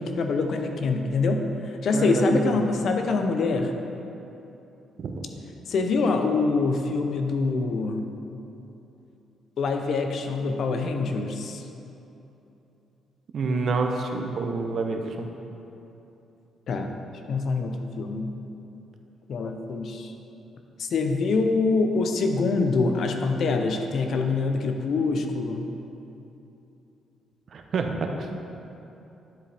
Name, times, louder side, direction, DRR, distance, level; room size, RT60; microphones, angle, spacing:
voice 1, 0.0-3.8 5.7-8.1 9.6-11.6 16.7-17.0 17.3-18.3 19.3-20.1 20.8-25.7, left 3 dB, 65° left, 5 dB, 0.6 m, -25 dB
voice 2, 1.9-2.5 5.0-5.1 13.3-15.3 27.5-28.4, right 3 dB, 55° right, 4 dB, 0.7 m, -27 dB
10.5 x 4.9 x 3.4 m, 2.9 s
cardioid pair, 90°, 0 cm